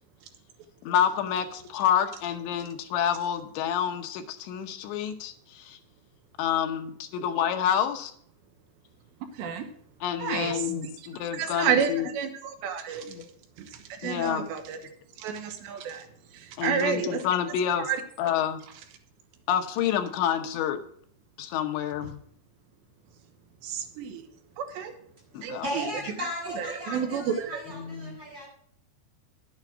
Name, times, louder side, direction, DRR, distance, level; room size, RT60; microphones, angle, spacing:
voice 1, 0.8-5.8 6.4-8.1 10.0-12.1 13.0-13.2 14.0-14.5 16.6-17.9 18.2-18.6 19.5-20.8 21.4-22.2 25.3-25.7 27.7-28.2, left 9 dB, 90° left, 5 dB, 3.3 m, -28 dB
voice 2, 9.3-9.6 10.2-10.7 11.3-13.1 13.6-14.8 15.2-16.1 16.3-17.2 17.8-18.0 23.6-24.2 24.6-24.9 25.4-25.8 26.2-26.3 26.5-27.6, right 7 dB, 85° right, 7 dB, 3.3 m, -30 dB
voice 3, 25.6-28.5, left 1 dB, 15° right, -4 dB, 6.4 m, -36 dB
11.0 x 8.9 x 6.0 m, 0.63 s
omnidirectional pair, 5.0 m